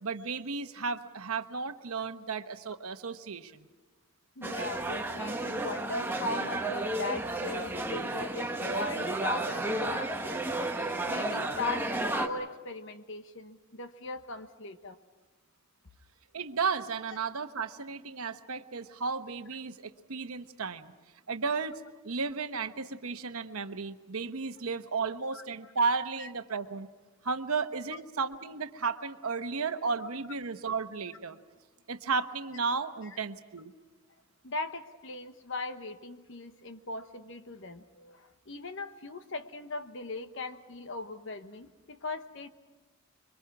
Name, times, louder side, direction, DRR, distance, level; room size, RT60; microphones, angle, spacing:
voice 1, 0.0-3.7 16.3-20.9 21.3-26.9 27.2-31.4 31.9-33.7, right 4 dB, 85° right, 9 dB, 1.0 m, -34 dB
voice 2, 4.4-10.4 10.9-15.0 25.3-25.7 26.2-26.3 27.9-28.0 33.0-33.2 34.4-42.5, left 3 dB, 60° left, 9 dB, 1.2 m, -39 dB
sound 1, 4.4-12.3, right 2 dB, 10° right, 1.1 m, -32 dB
26.0 x 23.5 x 6.0 m, 1.2 s
head